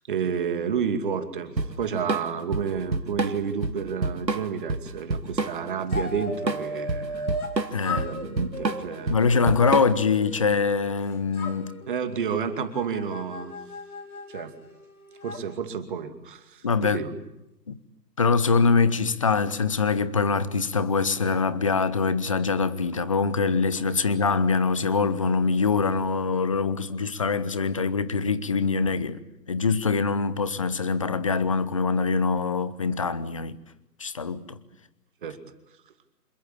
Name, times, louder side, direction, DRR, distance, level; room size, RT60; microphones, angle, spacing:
voice 1, 0.1-7.4 7.9-9.2 11.9-13.5 14.3-14.5 15.2-17.2 35.2-35.4, right 7 dB, 30° right, 2.5 m, -30 dB
Drum kit / Drum, 1.6-10.2, right 3 dB, 85° right, 2.1 m, -29 dB
sound 1, 5.9-7.6 7.8-10.9 11.3-15.4, left 2 dB, 60° left, 5.5 m, -37 dB
voice 2, 7.7-8.1 9.1-11.7 16.6-17.0 17.7-17.8 18.2-29.2 29.5-33.6 34.0-34.6, left 4 dB, 20° left, 0.9 m, -24 dB
27.0 x 20.5 x 8.5 m
figure-of-eight pair, 150°, 50 cm